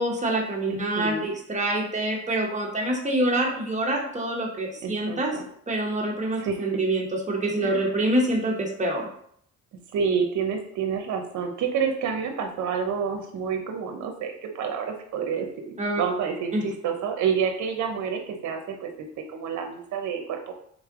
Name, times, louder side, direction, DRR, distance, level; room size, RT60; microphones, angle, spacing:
voice 1, 0.0-5.3 5.7-9.1 15.8-16.0 16.5-16.6, right 1 dB, 25° right, 0 dB, 1.1 m, -26 dB
voice 2, 0.7-1.3 4.8-5.5 6.4-6.7 7.6-7.9 9.9-18.9 19.3-20.5, right 6 dB, 70° right, 4 dB, 0.7 m, -29 dB
3.7 x 3.2 x 3.7 m, 0.65 s
cardioid pair, 90°, 30 cm